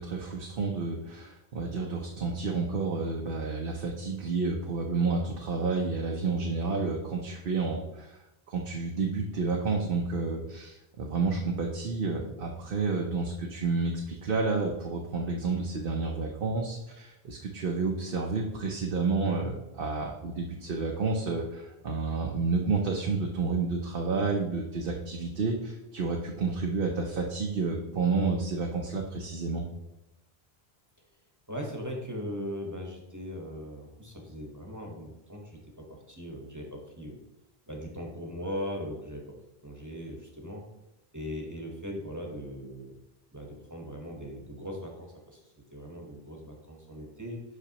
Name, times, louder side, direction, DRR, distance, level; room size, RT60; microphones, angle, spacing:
voice 1, 0.0-8.1 8.5-29.7, right 4 dB, 60° right, 0 dB, 0.9 m, -30 dB
voice 2, 31.5-37.2 37.7-39.2 39.6-40.6 41.1-42.9 43.3-47.4, equal, 20° right, 0 dB, 1.2 m, -39 dB
8.1 x 5.7 x 2.9 m, 0.92 s
omnidirectional pair, 1.0 m